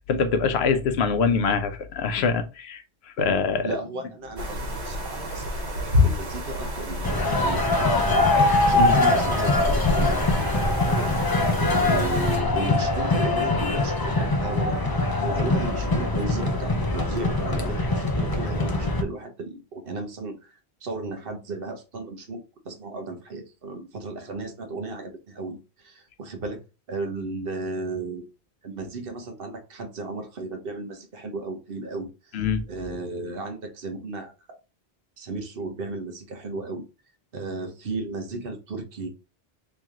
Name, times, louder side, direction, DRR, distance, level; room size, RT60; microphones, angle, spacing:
voice 1, 0.1-2.8 3.2-3.7 8.8-9.0 32.3-32.6, left 5 dB, 75° left, 0.9 m, -24 dB
voice 2, 3.6-11.1 11.7-14.8 15.2-20.5 20.8-28.2 28.6-34.6 35.2-36.8 37.3-39.1, right 3 dB, 60° right, 1.0 m, -35 dB
sound 1, 4.4-12.4, left 2 dB, 85° right, 1.4 m, -26 dB
sound 2, 7.0-19.0, left 2 dB, 35° left, 0.4 m, -24 dB
3.2 x 3.0 x 3.6 m
omnidirectional pair, 1.1 m